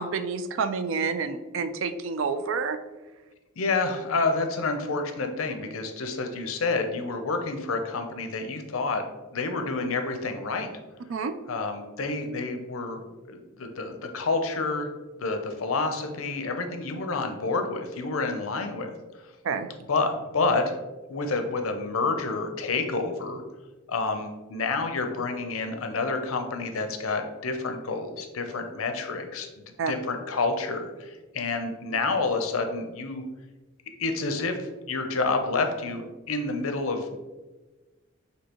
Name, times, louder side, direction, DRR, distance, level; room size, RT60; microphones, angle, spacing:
voice 1, 0.0-2.8 11.1-11.4 19.4-19.7 29.8-29.9, right 5 dB, 65° right, 10 dB, 0.4 m, -28 dB
voice 2, 3.6-10.7 11.5-13.0 13.3-14.9 15.2-19.3 19.9-20.8 21.1-23.4 23.9-29.5 29.9-33.2 34.0-37.2, left 3 dB, 85° left, 6 dB, 0.6 m, -29 dB
6.2 x 2.8 x 3.0 m, 1.2 s
head